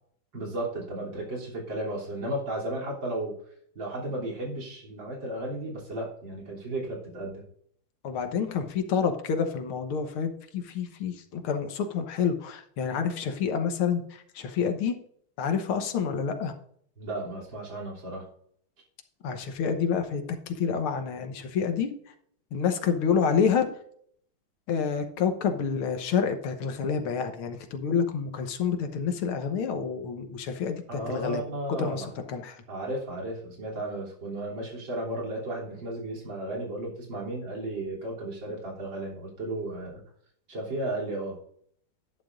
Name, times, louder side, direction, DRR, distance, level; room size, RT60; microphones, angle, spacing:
voice 1, 0.3-3.4 3.8-7.4 17.0-18.3 30.9-32.1 32.7-40.0 40.5-41.4, right 1 dB, 60° right, -2 dB, 3.9 m, -34 dB
voice 2, 8.0-15.0 15.4-16.5 19.2-22.1 22.5-23.7 24.7-31.4 31.7-32.6, left 6 dB, 90° left, 7 dB, 2.0 m, -28 dB
11.0 x 11.0 x 2.6 m, 0.64 s
omnidirectional pair, 2.3 m